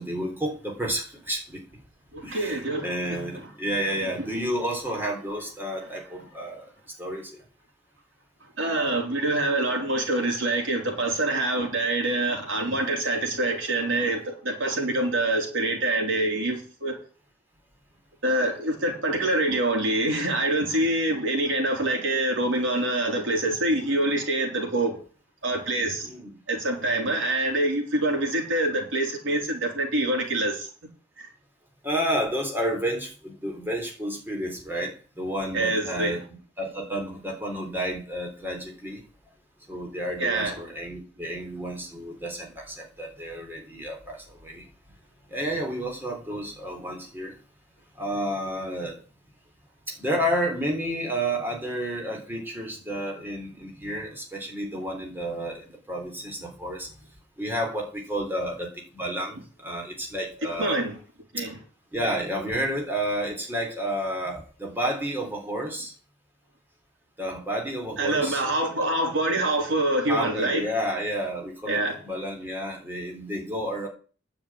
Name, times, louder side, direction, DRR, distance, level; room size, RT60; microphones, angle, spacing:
voice 1, 0.0-1.6 2.2-6.7 7.0-7.4 26.0-26.3 26.8-27.1 31.8-36.2 36.6-39.0 39.7-44.7 45.3-47.4 48.0-49.0 49.9-56.9 57.4-60.8 61.9-65.9 67.2-68.4 70.1-73.9, equal, 10° right, 3.5 m, -31 dB
voice 2, 2.1-3.4 4.0-4.3 8.6-16.9 18.2-25.0 25.4-26.1 26.5-30.7 31.2-31.3 35.5-36.2 40.2-40.5 60.6-60.9 61.3-61.6 68.0-70.6 71.7-72.0, right 2 dB, 85° right, 3.9 m, -25 dB
9.9 x 7.1 x 8.8 m
head